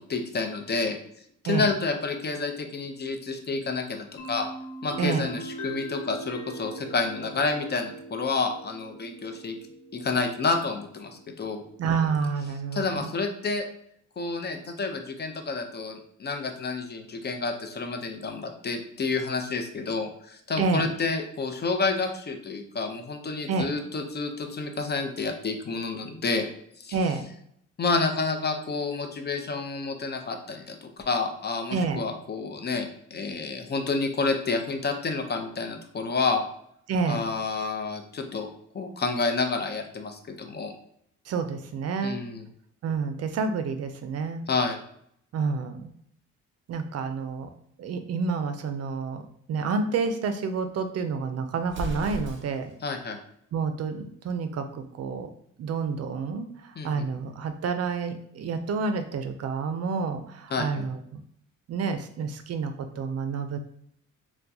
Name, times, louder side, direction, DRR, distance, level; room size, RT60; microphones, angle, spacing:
voice 1, 0.1-1.0 1.4-4.5 4.8-9.6 9.9-11.6 12.7-13.7 14.2-26.5 26.8-27.0 27.8-36.5 37.1-40.7 42.0-42.5 44.5-44.8 52.8-53.2 56.8-57.0 60.5-60.9, left 4 dB, 35° left, 5 dB, 0.6 m, -29 dB
sound 1, 4.2-11.8, right 1 dB, 85° left, 0.9 m, -41 dB
voice 2, 5.0-5.3 11.8-13.1 20.6-20.9 23.5-23.8 26.9-27.2 31.7-32.0 36.9-37.2 41.3-42.2 42.8-44.4 45.3-45.9 46.7-47.5 47.8-49.2 49.5-52.7 53.5-55.3 55.6-61.2 61.7-63.6, right 5 dB, 55° right, 8 dB, 0.5 m, -29 dB
Explosion, 51.6-52.8, equal, 40° right, 0.9 m, -35 dB
4.3 x 2.2 x 2.7 m, 0.69 s
cardioid pair, 90°, 30 cm